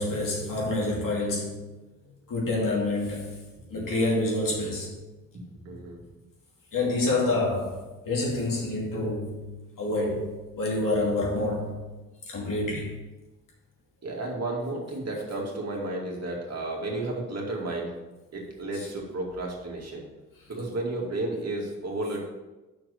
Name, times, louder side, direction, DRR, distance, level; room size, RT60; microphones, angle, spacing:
voice 1, 0.0-1.6 2.3-3.3 3.7-4.9 6.7-7.8 8.1-9.5 9.8-11.8 12.3-13.0 18.7-18.9, left 2 dB, 65° left, -3 dB, 2.6 m, -27 dB
voice 2, 5.3-6.0 14.0-18.0 18.3-20.0 20.5-22.2, right 2 dB, 45° right, -1 dB, 2.3 m, -32 dB
6.1 x 4.6 x 6.5 m, 1.1 s
supercardioid pair, 55°, 35 cm